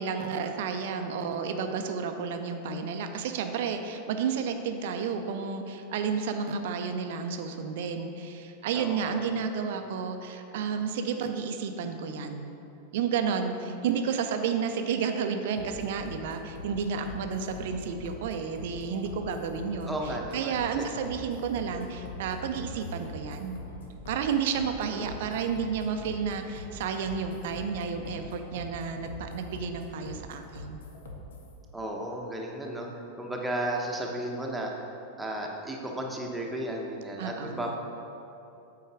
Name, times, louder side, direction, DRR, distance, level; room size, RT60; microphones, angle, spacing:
voice 1, 0.0-12.6 12.9-23.6 24.1-30.8 37.2-37.7, right 6 dB, 55° right, 6 dB, 0.5 m, -31 dB
voice 2, 8.7-9.2 19.9-20.9 24.9-25.2 31.7-34.7 35.2-37.8, right 1 dB, 5° right, -1 dB, 1.0 m, -34 dB
sound 1, 15.6-31.5, left 1 dB, 65° left, 1.0 m, -43 dB
8.1 x 4.7 x 4.8 m, 2.8 s
figure-of-eight pair, 90°, 0 cm